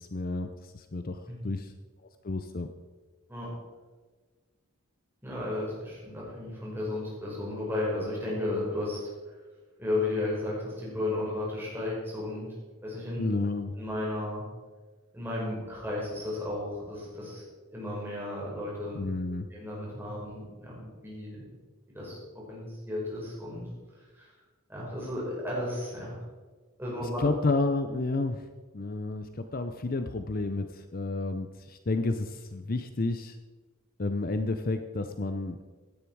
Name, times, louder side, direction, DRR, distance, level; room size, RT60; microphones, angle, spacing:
voice 1, 0.0-1.7 2.2-2.7 13.2-13.7 18.9-19.5 27.0-28.5 28.7-33.4 34.0-35.6, left 3 dB, 40° left, 8 dB, 0.6 m, -31 dB
voice 2, 5.2-9.0 9.8-12.5 12.8-13.2 13.8-14.4 15.1-17.4 17.7-19.0 19.5-21.5 21.9-22.2 22.5-23.6 24.1-24.3 24.7-26.2 26.8-27.2, left 2 dB, 10° right, -5 dB, 5.3 m, -34 dB
16.0 x 10.5 x 4.7 m, 1.4 s
head